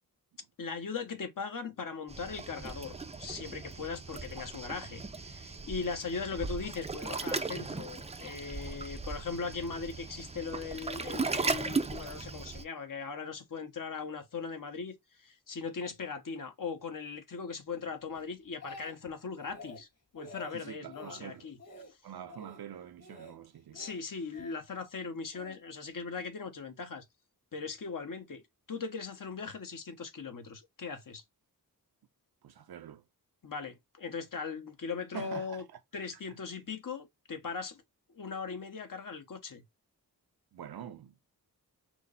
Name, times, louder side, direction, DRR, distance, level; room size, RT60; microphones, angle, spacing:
voice 1, 0.6-19.9 20.1-21.6 23.7-27.0 27.5-28.4 28.7-31.2 33.4-35.6 35.9-37.8 38.1-39.6, left 5 dB, 60° left, 1.1 m, -39 dB
Waves surf, 2.1-12.6, right 3 dB, 20° right, 0.5 m, -37 dB
Speech, 18.1-19.1 19.4-19.8 20.2-20.5 20.9-21.2 21.6-21.9 22.3-22.6 23.0-23.4 23.7-24.6 25.3-25.6, left 2 dB, 40° left, 1.8 m, -48 dB
voice 2, 20.5-21.5 22.0-23.8 32.4-33.0 35.1-35.6 40.5-41.3, right 9 dB, 80° right, 0.7 m, -45 dB
6.1 x 2.1 x 3.9 m
wide cardioid pair, 95°, 37 cm